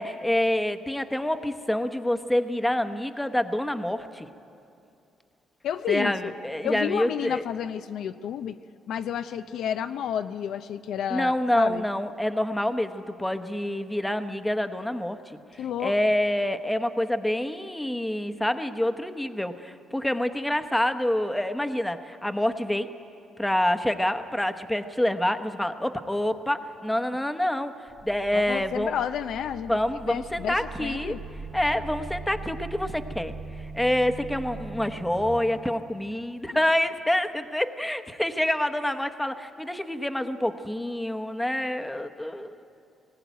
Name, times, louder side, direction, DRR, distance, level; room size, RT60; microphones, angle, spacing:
voice 1, 0.0-4.3 5.9-7.4 11.1-15.2 15.5-22.9 23.4-28.9 29.7-31.1 31.5-42.6, left 1 dB, 5° left, 8 dB, 1.0 m, -27 dB
voice 2, 5.6-6.3 6.6-8.6 8.9-11.9 15.6-15.9 28.3-29.7 30.1-31.2, left 9 dB, 75° left, 9 dB, 0.6 m, -31 dB
sound 1, 27.9-35.4, right 3 dB, 50° right, 3.0 m, -40 dB
19.5 x 17.0 x 9.3 m, 2.6 s
cardioid pair, 90°, 0 cm